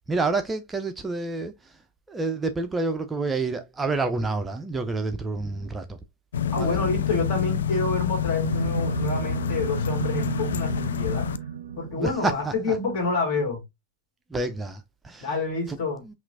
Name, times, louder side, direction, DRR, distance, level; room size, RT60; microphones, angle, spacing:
voice 1, 0.1-1.5 2.1-6.0 6.6-6.8 11.9-12.8 14.3-15.3 15.7-15.8 16.0-16.1, right 3 dB, 15° right, 0.4 m, -28 dB
sound 1, 6.3-11.4, left 8 dB, 65° left, 0.3 m, -27 dB
voice 2, 6.5-11.3 11.8-13.6 15.2-16.0, left 3 dB, 45° left, 1.9 m, -28 dB
sound 2, 8.4-13.0, right 8 dB, 70° right, 0.5 m, -33 dB
5.7 x 2.4 x 2.4 m
figure-of-eight pair, 90°, 0 cm